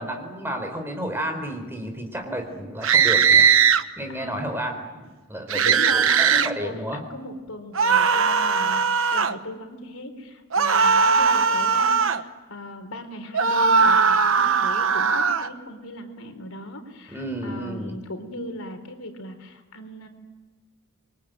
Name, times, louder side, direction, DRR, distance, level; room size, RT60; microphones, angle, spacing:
voice 1, 0.0-3.5 4.0-4.7 5.3-7.0 17.1-18.0, equal, 10° right, 4 dB, 4.2 m, -31 dB
sound 1, 2.8-3.8 5.5-6.5 7.8-9.4 10.5-12.2 13.3-15.5, right 6 dB, 70° right, 1.1 m, -19 dB
voice 2, 5.5-20.1, left 1 dB, 90° left, 7 dB, 4.0 m, -37 dB
27.5 x 23.0 x 9.2 m, 1.3 s
head